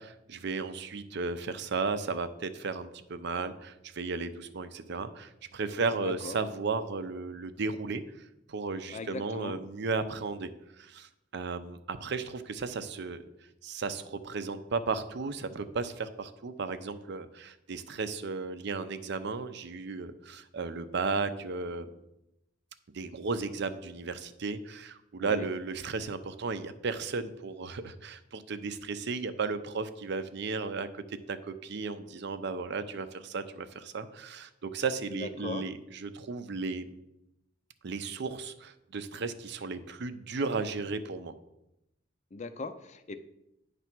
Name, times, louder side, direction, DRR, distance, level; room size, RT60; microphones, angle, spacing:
voice 1, 0.0-8.0 8.5-10.5 10.8-13.2 13.6-21.9 22.9-36.9 37.8-41.3, right 4 dB, 60° right, 11 dB, 0.5 m, -34 dB
voice 2, 5.9-6.4 8.9-9.6 25.2-25.5 35.1-35.7 42.3-43.1, left 3 dB, 40° left, 10 dB, 0.5 m, -39 dB
9.3 x 3.3 x 6.0 m, 0.87 s
head